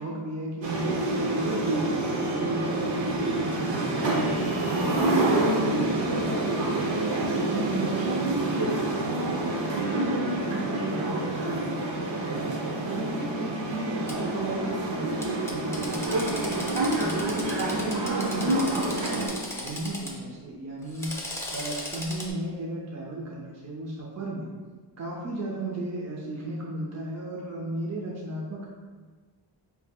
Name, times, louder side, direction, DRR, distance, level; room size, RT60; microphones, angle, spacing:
voice 1, 0.0-4.7 5.3-11.7 12.2-12.6 12.8-16.6 16.9-24.5 25.0-28.7, right 2 dB, 40° right, -4 dB, 0.6 m, -34 dB
sound 1, 0.6-19.3, right 2 dB, 75° right, 0.8 m, -27 dB
Drill, 14.1-14.2 15.2-20.1 20.8-22.3, left 1 dB, 5° left, 0.7 m, -37 dB
6.9 x 2.7 x 2.3 m, 1.5 s
wide cardioid pair, 105°, 45 cm